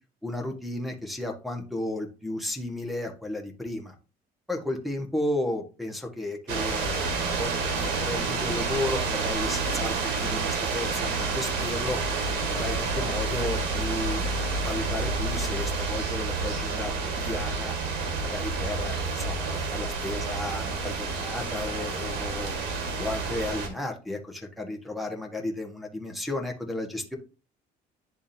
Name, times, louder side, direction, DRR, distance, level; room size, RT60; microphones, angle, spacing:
voice 1, 0.2-3.9 4.5-12.0 12.5-17.7 18.2-22.6 23.0-27.2, left 2 dB, ahead, 1 dB, 1.5 m, -33 dB
sound 1, 6.5-23.7, right 4 dB, 90° right, 1.7 m, -29 dB
10.5 x 3.6 x 2.8 m, 0.33 s
cardioid pair, 110°, 17 cm